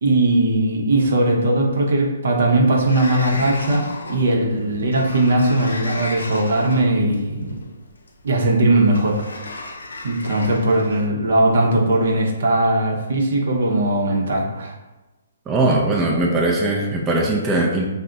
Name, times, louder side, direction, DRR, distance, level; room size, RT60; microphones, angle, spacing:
voice 1, 0.0-7.6 8.2-9.3 10.0-14.7, right 1 dB, 65° right, 0 dB, 0.6 m, -19 dB
Sliding door, 2.9-11.1, left 2 dB, 85° left, 0.4 m, -35 dB
voice 2, 15.5-17.9, right 2 dB, 15° right, -2 dB, 0.4 m, -20 dB
2.4 x 2.0 x 3.8 m, 1.1 s
hypercardioid pair, 140°, 0 cm